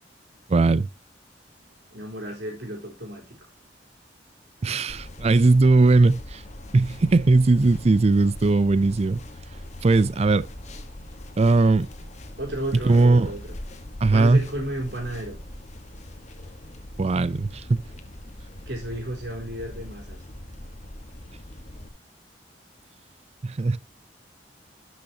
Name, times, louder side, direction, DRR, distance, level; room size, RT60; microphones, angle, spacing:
voice 1, 0.5-0.9 4.6-6.4 6.7-9.2 9.8-10.5 11.4-11.9 12.8-13.3 14.0-14.4 17.0-17.8 23.4-23.8, right 3 dB, 35° right, 0.4 m, -19 dB
voice 2, 1.9-3.4 12.4-13.6 14.1-15.4 18.7-20.2, right 1 dB, 75° right, 3.9 m, -32 dB
sound 1, 4.9-21.9, left 1 dB, 40° left, 1.3 m, -41 dB
12.0 x 6.3 x 2.8 m
head